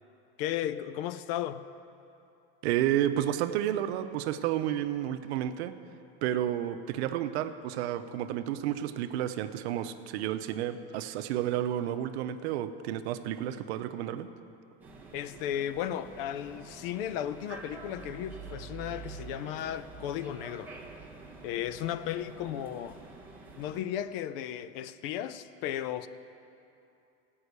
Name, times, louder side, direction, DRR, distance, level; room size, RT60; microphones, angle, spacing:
voice 1, 0.4-1.7 15.1-20.7 21.4-23.0 23.6-26.1, left 11 dB, 60° left, 0.6 m, -35 dB
voice 2, 2.6-5.8 6.2-14.3, right 11 dB, 80° right, 0.7 m, -31 dB
sound 1, 14.8-23.8, right 4 dB, 5° right, 1.0 m, -47 dB
15.5 x 5.6 x 8.1 m
supercardioid pair, 160°, 32 cm